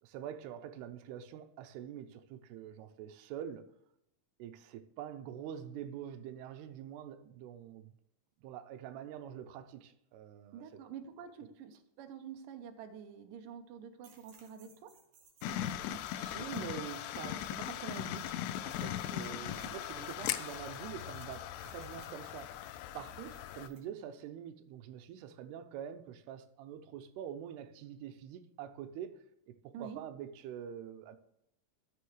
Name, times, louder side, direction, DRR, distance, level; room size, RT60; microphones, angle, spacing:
voice 1, 0.0-3.7 4.4-8.0 8.4-10.8 16.1-31.2, right 9 dB, 90° right, 2.7 m, -46 dB
voice 2, 10.5-14.9 19.6-20.1 29.7-30.0, right 7 dB, 70° right, 2.3 m, -48 dB
sound 1, 14.0-23.9, right 5 dB, 55° right, 2.9 m, -63 dB
sound 2, 15.4-23.7, left 11 dB, 90° left, 2.6 m, -39 dB
13.0 x 6.9 x 3.2 m
omnidirectional pair, 4.6 m